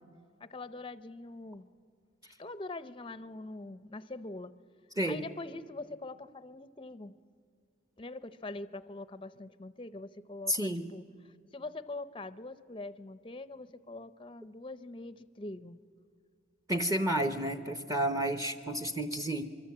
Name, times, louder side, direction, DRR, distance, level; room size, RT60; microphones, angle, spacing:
voice 1, 0.4-1.7 2.4-4.5 5.1-7.1 8.0-11.0 11.5-15.8, left 2 dB, 25° left, 15 dB, 0.6 m, -43 dB
voice 2, 10.5-10.9 16.7-19.4, right 1 dB, 15° right, 8 dB, 0.8 m, -31 dB
24.0 x 24.0 x 8.6 m, 2.1 s
head